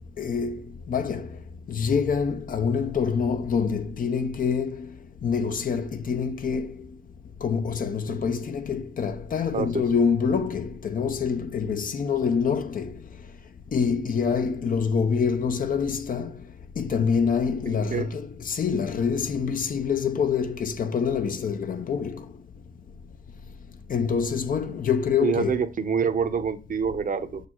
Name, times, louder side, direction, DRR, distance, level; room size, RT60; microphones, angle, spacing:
voice 1, 0.2-0.6 0.9-1.3 1.7-4.9 5.2-6.9 7.4-13.0 13.7-16.3 16.8-22.2 23.9-25.6, left 6 dB, 45° left, 0.8 m, -26 dB
voice 2, 25.2-27.4, right 6 dB, 40° right, 1.0 m, -26 dB
6.7 x 6.2 x 4.6 m
cardioid pair, 90°, 20 cm